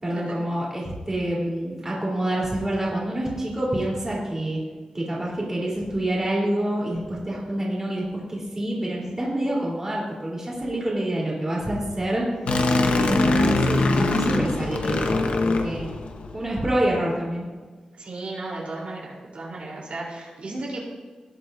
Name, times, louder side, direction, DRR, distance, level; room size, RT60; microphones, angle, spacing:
voice 1, 0.0-4.6 4.9-12.3 12.9-15.9 16.3-17.5, right 1 dB, 20° right, -4 dB, 3.5 m, -27 dB
sound 1, 12.5-16.4, left 2 dB, 70° left, 1.0 m, -22 dB
voice 2, 18.0-20.8, right 2 dB, 65° right, -4 dB, 3.5 m, -35 dB
19.0 x 8.1 x 2.6 m, 1.4 s
wide cardioid pair, 125°, 2 cm